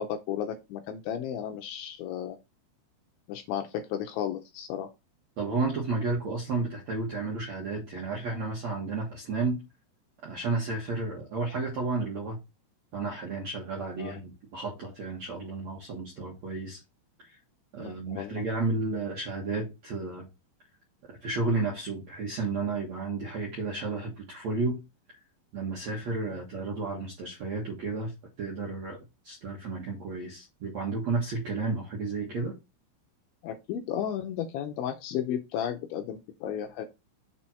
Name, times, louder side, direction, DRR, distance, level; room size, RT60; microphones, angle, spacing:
voice 1, 0.0-2.4 3.3-4.9 14.0-14.2 17.8-18.4 26.3-26.4 33.4-36.9, left 9 dB, 80° left, 2.8 m, -34 dB
voice 2, 5.4-9.6 10.2-12.4 12.9-16.8 17.2-17.4 17.7-20.3 21.2-24.8 25.5-28.1 28.4-29.0 29.2-32.6, right 3 dB, 65° right, 1.7 m, -32 dB
7.0 x 4.4 x 4.4 m
omnidirectional pair, 5.9 m